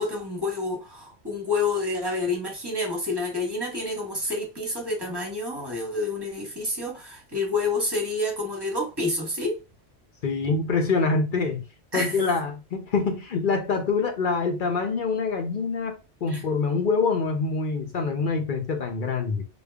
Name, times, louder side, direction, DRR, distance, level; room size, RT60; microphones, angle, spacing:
voice 1, 0.0-9.6 11.9-12.2 16.3-16.4, left 2 dB, 20° right, 1.1 m, -28 dB
voice 2, 10.2-11.6 11.9-19.4, left 4 dB, 55° left, 0.6 m, -25 dB
5.0 x 2.3 x 2.3 m
omnidirectional pair, 1.3 m